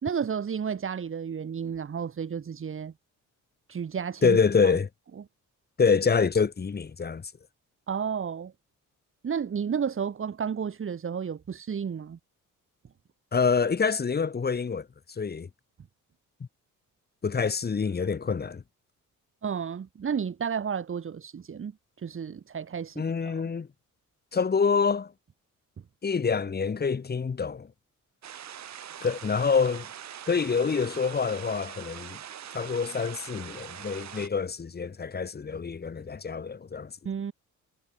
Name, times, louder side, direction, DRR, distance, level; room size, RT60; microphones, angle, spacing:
voice 1, 0.0-2.9 3.7-4.4 4.6-4.8 7.9-8.5 9.2-12.2 19.4-21.7 22.0-23.4 37.0-37.3, right 7 dB, 40° right, 2.8 m, -32 dB
voice 2, 4.2-4.9 5.8-7.3 13.3-15.5 17.2-18.6 23.0-23.7 24.3-25.1 26.0-27.7 29.0-29.9 30.3-32.2 32.5-36.9, left 5 dB, 30° left, 1.9 m, -26 dB
sound 1, 28.2-34.3, right 10 dB, 60° right, 2.6 m, -43 dB
cardioid pair, 120°, 31 cm